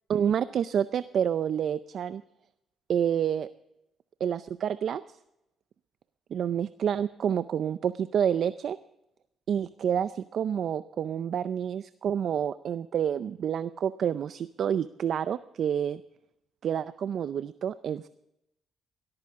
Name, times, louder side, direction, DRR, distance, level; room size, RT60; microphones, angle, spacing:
voice 1, 0.1-2.2 2.9-3.5 4.2-5.0 6.3-8.8 9.5-16.0 16.6-18.1, right 8 dB, 60° right, 14 dB, 0.5 m, -28 dB
18.5 x 14.0 x 3.6 m, 0.86 s
cardioid pair, 90°, 0 cm